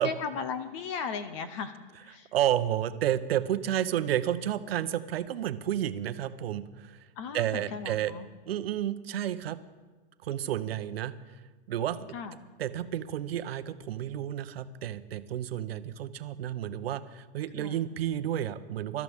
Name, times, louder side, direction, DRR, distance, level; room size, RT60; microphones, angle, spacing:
voice 1, 0.0-2.3 7.2-8.3 12.1-12.4 17.6-17.8, left 6 dB, 30° left, 11 dB, 0.7 m, -36 dB
voice 2, 2.3-7.1 7.3-8.1 8.5-9.6 10.2-11.1 11.7-12.1 12.6-19.0, right 11 dB, 65° right, 11 dB, 1.0 m, -31 dB
24.5 x 13.0 x 3.6 m, 1.3 s
hypercardioid pair, 160°, 33 cm